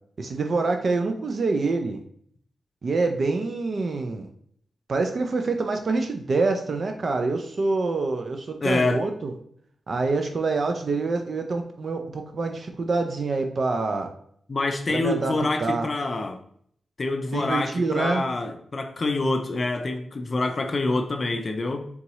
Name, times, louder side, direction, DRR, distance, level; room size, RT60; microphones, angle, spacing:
voice 1, 0.2-2.0 2.8-4.3 4.9-9.3 9.9-14.1 14.9-15.9 17.3-18.2, right 3 dB, 55° right, 5 dB, 0.4 m, -26 dB
voice 2, 8.6-9.0 14.5-16.4 17.0-21.9, left 2 dB, 45° left, 6 dB, 0.4 m, -26 dB
3.9 x 3.6 x 3.0 m, 0.63 s
cardioid pair, 75°, 0 cm